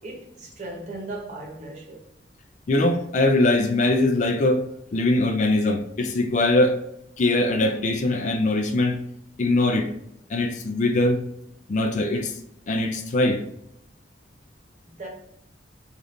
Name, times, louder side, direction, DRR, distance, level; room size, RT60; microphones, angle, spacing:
voice 1, 0.0-2.0 14.8-15.1, right 2 dB, 40° right, 0.9 m, -37 dB
voice 2, 2.7-4.6 4.9-6.8 7.2-9.0 9.4-9.9 10.3-11.2 11.7-12.4 12.7-13.4, left 2 dB, 45° left, 0.4 m, -21 dB
2.7 x 2.4 x 3.4 m
head